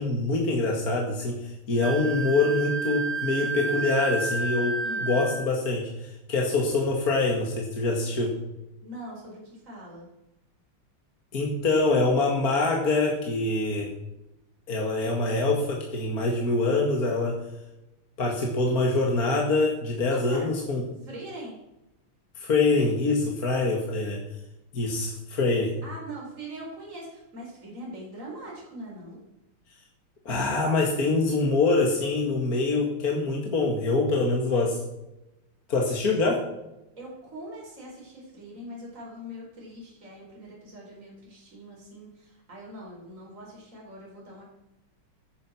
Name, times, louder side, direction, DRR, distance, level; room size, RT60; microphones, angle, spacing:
voice 1, 0.0-8.3 11.3-13.9 14.7-17.4 18.2-20.8 22.4-24.2 24.7-25.7 30.3-34.8 35.7-36.4, left 3 dB, 45° left, -1 dB, 2.3 m, -25 dB
Wind instrument woodwind instrument, 1.8-5.5, right 4 dB, 65° right, 1.7 m, -31 dB
voice 2, 8.8-10.1 20.1-20.5 21.0-21.6 25.8-29.2 36.2-36.3 37.0-44.4, right 1 dB, 35° right, -3 dB, 4.7 m, -42 dB
16.0 x 9.9 x 6.0 m, 0.94 s
omnidirectional pair, 2.4 m